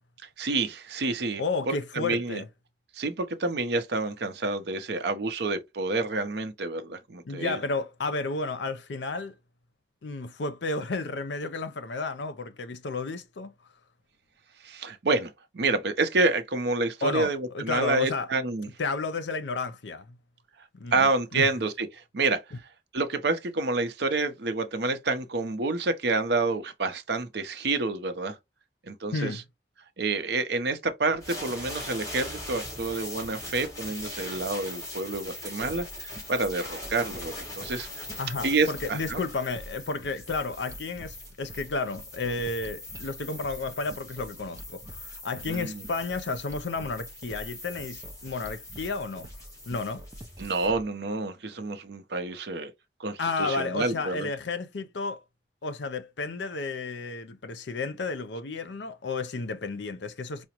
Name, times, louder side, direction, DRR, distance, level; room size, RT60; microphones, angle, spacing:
voice 1, 0.4-2.4 2.9-7.6 14.6-18.7 20.9-22.4 22.9-28.4 28.8-29.4 30.0-37.9 38.4-39.2 45.5-45.8 50.4-52.7 53.0-54.3, right 3 dB, 65° right, 0.6 m, -28 dB
voice 2, 1.4-2.5 7.2-9.3 10.0-13.5 17.0-18.3 18.8-20.2 20.7-21.5 29.1-29.4 38.2-49.3 49.7-50.0 53.2-55.2 55.6-60.4, left 3 dB, 75° left, 0.6 m, -32 dB
sound 1, 31.2-50.7, left 1 dB, 20° left, 1.6 m, -41 dB
sound 2, 35.4-50.9, right 1 dB, 20° right, 0.5 m, -47 dB
4.9 x 2.1 x 2.9 m
head